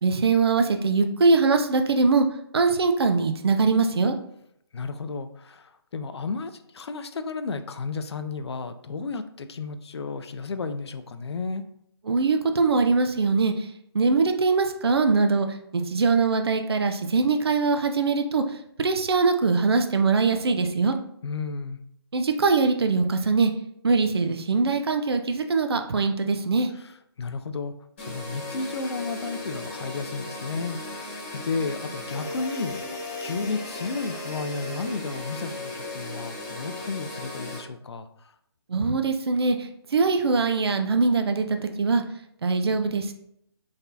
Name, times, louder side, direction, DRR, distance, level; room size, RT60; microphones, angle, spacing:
voice 1, 0.0-2.3 2.5-4.1 12.1-13.6 13.9-15.5 15.7-18.4 18.8-20.9 22.1-23.5 23.8-26.7 38.7-39.6 39.9-42.0 42.4-43.1, right 4 dB, 65° right, 6 dB, 0.6 m, -22 dB
voice 2, 4.7-11.6 21.2-21.8 26.7-27.7 28.0-32.8 33.2-38.1, left 4 dB, 75° left, 10 dB, 0.5 m, -33 dB
sound 1, 28.0-37.6, left 2 dB, 25° left, 1.2 m, -36 dB
3.9 x 3.5 x 2.7 m, 0.73 s
hypercardioid pair, 175°, 14 cm